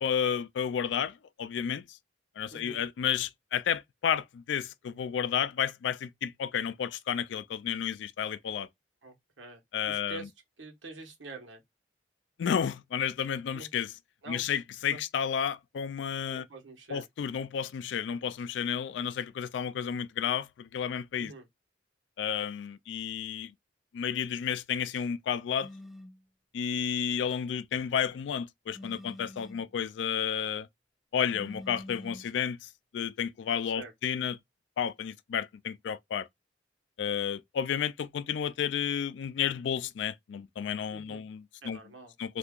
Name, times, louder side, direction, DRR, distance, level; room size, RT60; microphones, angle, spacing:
voice 1, 0.0-1.8 2.4-8.7 9.7-10.3 12.4-13.9 14.3-16.4 16.9-21.3 22.2-23.5 23.9-25.7 26.5-30.7 31.1-34.4 34.8-36.3 37.0-41.8 42.2-42.4, left 8 dB, 70° left, 0.3 m, -32 dB
voice 2, 2.5-2.8 9.0-10.3 10.6-11.6 13.5-13.7 14.2-14.4 14.9-15.0 16.3-17.0 21.2-21.5 33.6-33.9 40.9-41.2 41.6-42.1, right 3 dB, 85° right, 1.3 m, -46 dB
sound 1, 25.6-26.2 28.7-29.7 31.3-32.3, left 1 dB, ahead, 0.4 m, -46 dB
2.8 x 2.4 x 3.5 m
head